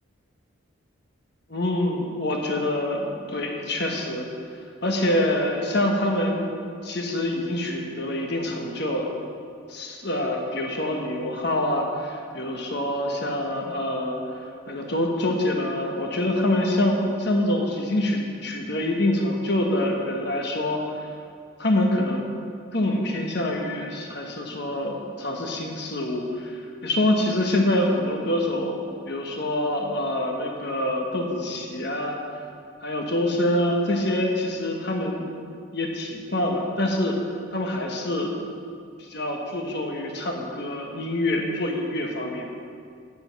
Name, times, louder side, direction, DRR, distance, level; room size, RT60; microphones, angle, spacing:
voice 1, 1.5-4.3 4.8-6.5 6.8-9.1 9.7-14.2 14.7-21.1 21.6-22.3 22.7-28.8 29.1-32.2 32.8-35.3 35.7-37.2 37.5-38.4 39.0-42.5, left 1 dB, 55° left, 1 dB, 1.2 m, -25 dB
7.7 x 6.9 x 8.1 m, 2.2 s
head